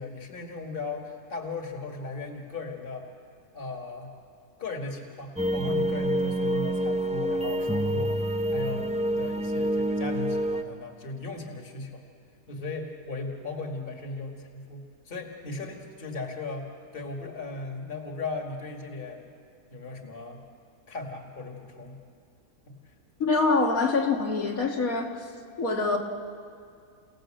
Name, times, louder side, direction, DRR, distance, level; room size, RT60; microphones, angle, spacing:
voice 1, 0.0-3.1 3.5-4.1 4.6-8.2 8.5-12.1 12.5-16.7 16.9-19.3 19.7-20.4 20.9-22.0 22.7-22.8, left 3 dB, 35° left, 2 dB, 2.2 m, -37 dB
sound 1, 5.4-10.6, right 1 dB, 10° right, 0.4 m, -27 dB
voice 2, 23.2-25.2 25.6-26.0, left 3 dB, 65° left, 1 dB, 2.2 m, -25 dB
29.5 x 17.5 x 7.7 m, 2.3 s
omnidirectional pair, 1.6 m